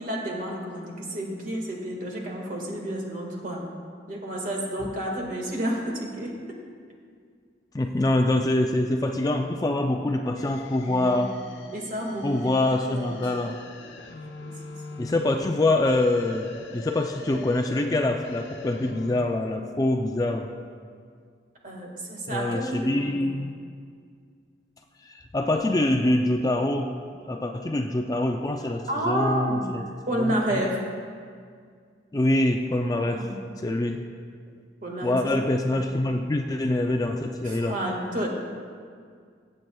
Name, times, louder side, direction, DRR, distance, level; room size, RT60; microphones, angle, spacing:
voice 1, 0.0-3.6 4.1-6.3 10.8-12.5 12.9-13.3 13.8-13.9 14.4-14.5 14.9-15.0 21.6-23.4 28.9-30.8 33.0-33.4 34.8-35.2 35.6-35.8 37.4-38.3, right 1 dB, 45° right, -1 dB, 1.7 m, -31 dB
voice 2, 7.7-11.3 12.2-13.6 15.0-20.5 22.3-23.5 25.0-26.9 27.3-29.8 30.2-30.6 32.1-33.2 33.6-34.0 35.0-37.8, left 1 dB, 20° left, 4 dB, 0.4 m, -25 dB
sound 1, 10.4-19.2, left 3 dB, 70° left, 0.8 m, -42 dB
20.5 x 7.8 x 2.3 m, 2.1 s
head